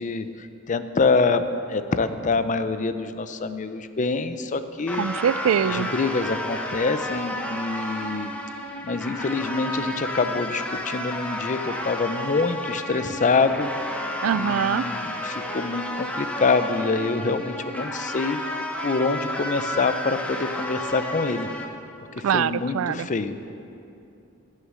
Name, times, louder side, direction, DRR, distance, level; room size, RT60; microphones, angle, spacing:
voice 1, 0.0-5.0 5.6-8.3 8.8-13.7 14.3-21.5 22.2-23.4, left 4 dB, 40° left, 11 dB, 0.5 m, -26 dB
sound 1, 4.9-21.6, left 1 dB, 5° left, 0.8 m, -32 dB
voice 2, 5.0-5.9 14.2-14.8 22.2-23.1, right 8 dB, 75° right, 17 dB, 0.3 m, -23 dB
15.5 x 6.5 x 6.2 m, 2.7 s
head